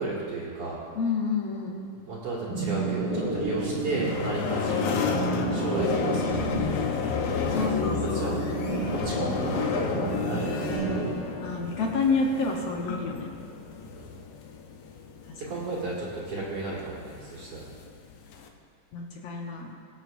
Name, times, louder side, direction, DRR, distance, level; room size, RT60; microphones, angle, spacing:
voice 1, 0.0-0.8 2.0-7.0 7.4-7.7 8.0-8.4 8.9-10.9 13.8-14.2 15.4-17.7, right 3 dB, 45° right, -6 dB, 2.8 m, -34 dB
voice 2, 0.9-1.9 4.5-5.0 7.5-8.4 11.4-13.3 15.3-15.4 18.9-19.7, left 4 dB, 65° left, 0 dB, 1.7 m, -29 dB
sound 1, 2.5-11.1, right 3 dB, 80° right, 0.9 m, -31 dB
sound 2, 3.6-18.5, left 6 dB, 80° left, 2.5 m, -32 dB
24.0 x 8.0 x 2.6 m, 2.4 s
omnidirectional pair, 4.0 m